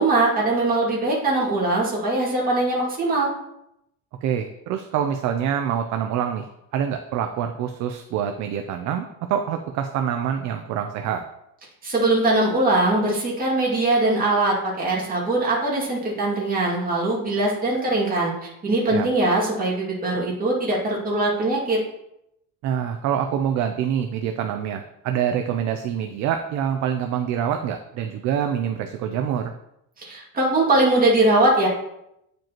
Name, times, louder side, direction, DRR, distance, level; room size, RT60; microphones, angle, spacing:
voice 1, 0.0-3.3 11.8-21.8 30.0-31.7, right 2 dB, 20° right, -4 dB, 2.2 m, -21 dB
voice 2, 4.2-6.5 6.7-11.2 18.9-19.1 22.6-29.5, right 9 dB, 45° right, 5 dB, 0.5 m, -26 dB
9.1 x 5.1 x 2.9 m, 0.82 s
cardioid pair, 160°, 41 cm